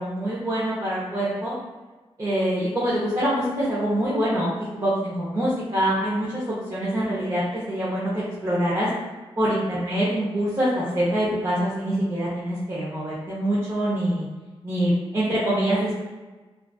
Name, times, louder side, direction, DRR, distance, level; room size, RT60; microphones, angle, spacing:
voice 1, 0.0-1.5 2.2-8.9 9.4-14.3 14.6-16.0, right 1 dB, 30° right, -9 dB, 0.6 m, -25 dB
2.4 x 2.3 x 2.3 m, 1.2 s
wide cardioid pair, 100°, 11 cm